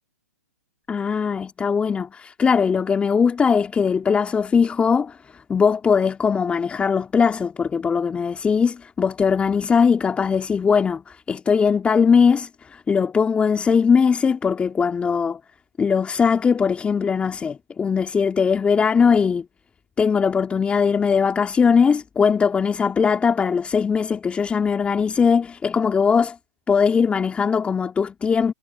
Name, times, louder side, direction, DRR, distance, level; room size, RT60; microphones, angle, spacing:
voice 1, 0.9-15.4 15.8-19.5 20.0-26.4 26.7-28.5, left 6 dB, 15° left, 2.6 m, -20 dB
hypercardioid pair, 120°, 9 cm